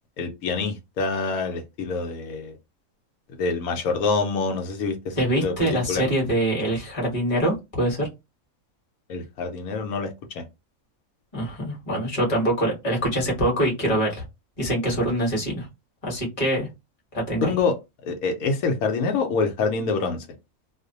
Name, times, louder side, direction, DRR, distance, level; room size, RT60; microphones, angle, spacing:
voice 1, 0.2-2.5 3.4-6.0 9.1-10.4 17.4-17.7 18.1-20.2, left 4 dB, 80° left, 1.0 m, -26 dB
voice 2, 5.2-8.1 11.3-14.2 14.6-15.7 16.0-16.7 17.1-17.5, right 1 dB, 25° left, 1.0 m, -24 dB
2.6 x 2.1 x 2.6 m
omnidirectional pair, 1.5 m